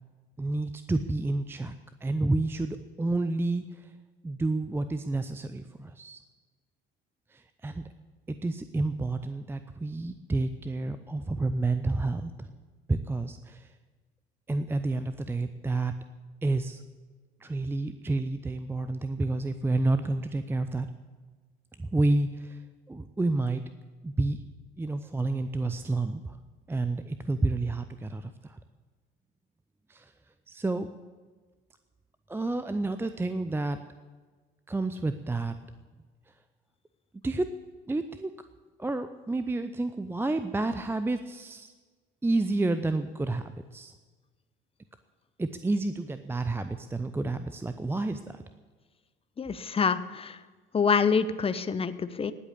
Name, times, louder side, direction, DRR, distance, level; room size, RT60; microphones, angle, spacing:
voice 1, 0.4-1.7 2.0-3.9 4.2-6.2 7.3-7.9 8.3-12.5 12.9-13.7 14.5-15.9 16.4-16.8 17.4-20.9 21.8-22.6 22.9-23.6 24.0-24.4 24.8-26.4 26.7-28.6 29.9-30.1 30.5-30.9 32.3-33.8 34.7-35.6 37.2-37.5 37.9-38.3 38.8-41.7 42.2-43.9 45.4-48.4, right 2 dB, 10° right, 11 dB, 0.6 m, -30 dB
voice 2, 49.4-50.4 50.7-52.3, left 5 dB, 20° left, 13 dB, 0.8 m, -26 dB
19.5 x 8.2 x 8.5 m, 1.4 s
figure-of-eight pair, 60°, 29 cm